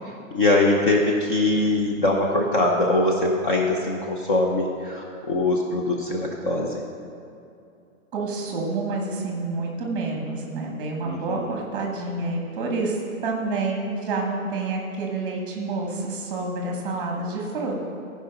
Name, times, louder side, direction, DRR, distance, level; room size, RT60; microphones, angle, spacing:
voice 1, 0.3-6.8 11.0-11.5, left 2 dB, 40° left, -1 dB, 0.9 m, -22 dB
voice 2, 8.1-13.0 13.2-17.9, right 3 dB, 10° right, 0 dB, 1.2 m, -28 dB
14.5 x 5.0 x 5.7 m, 2.6 s
hypercardioid pair, 175°, 41 cm